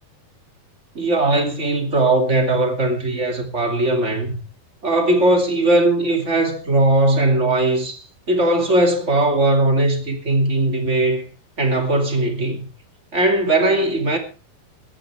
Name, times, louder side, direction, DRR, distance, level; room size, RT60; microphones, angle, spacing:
voice 1, 0.9-4.4 4.8-11.3 11.6-12.7 13.1-14.2, right 2 dB, 20° right, 2.1 m, -19 dB
17.5 x 13.5 x 3.4 m
omnidirectional pair, 4.6 m